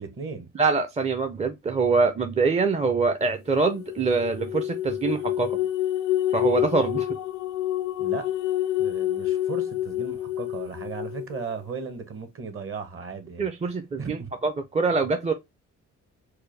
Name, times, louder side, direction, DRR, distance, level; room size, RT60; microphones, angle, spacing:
voice 1, 0.0-0.5 8.0-8.3 8.8-13.5 14.0-14.3, right 5 dB, 45° right, 1.1 m, -36 dB
voice 2, 0.5-5.6 6.3-7.1 13.4-15.3, right 4 dB, 20° right, 0.5 m, -24 dB
sound 1, 3.6-11.4, left 13 dB, 70° left, 0.5 m, -28 dB
4.5 x 2.2 x 3.2 m
cardioid pair, 90°, 30 cm